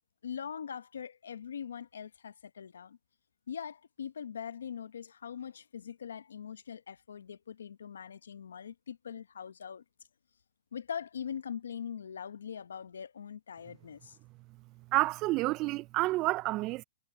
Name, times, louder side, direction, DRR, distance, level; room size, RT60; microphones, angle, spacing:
voice 1, 0.2-3.0 3.5-9.8 10.7-14.2, left 8 dB, 90° left, 1.0 m, -42 dB
voice 2, 14.9-16.8, right 20 dB, 35° right, 0.4 m, -29 dB
hypercardioid pair, 130°, 0 cm